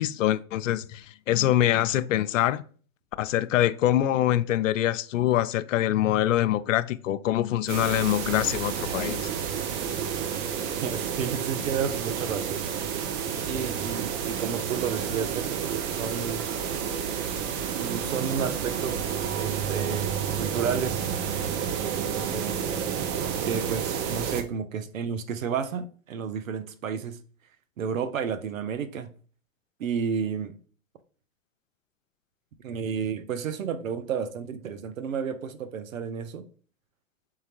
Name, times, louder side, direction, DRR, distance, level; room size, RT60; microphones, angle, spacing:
voice 1, 0.0-2.6 3.2-9.3, left 13 dB, 75° left, 0.5 m, -24 dB
sound 1, 7.7-24.4, right 8 dB, 30° right, 0.5 m, -30 dB
voice 2, 10.8-12.6 13.4-16.5 17.8-20.1 20.4-21.1 22.2-22.7 23.4-27.2 27.8-29.1 29.8-30.5 32.6-36.4, right 7 dB, 80° right, 0.7 m, -31 dB
4.4 x 3.8 x 2.9 m
hypercardioid pair, 115°, 39 cm